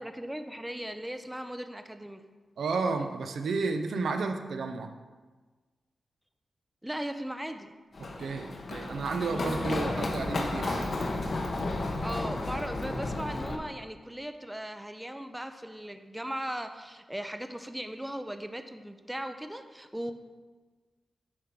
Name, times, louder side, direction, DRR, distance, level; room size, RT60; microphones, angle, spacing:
voice 1, 0.0-2.3 6.8-7.8 12.0-20.1, right 1 dB, 5° right, 8 dB, 0.5 m, -38 dB
voice 2, 2.6-4.9 8.0-10.9, right 4 dB, 85° right, 6 dB, 0.6 m, -32 dB
Run, 7.9-13.5, left 2 dB, 60° left, 0.9 m, -32 dB
8.6 x 3.4 x 5.9 m, 1.4 s
cardioid pair, 80°, 0 cm